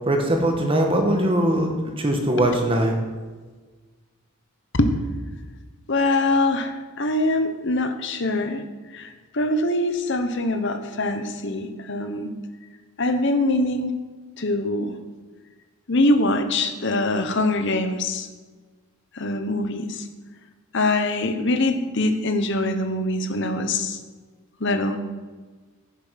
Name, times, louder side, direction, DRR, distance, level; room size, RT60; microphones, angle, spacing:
voice 1, 0.1-3.0, right 1 dB, 25° right, 3 dB, 1.4 m, -21 dB
voice 2, 5.9-8.6 8.9-12.3 13.0-13.9 14.4-14.9 15.9-18.3 19.1-20.1 20.7-24.0 24.6-25.0, left 2 dB, 55° left, 7 dB, 1.1 m, -23 dB
10.5 x 8.0 x 5.9 m, 1.4 s
head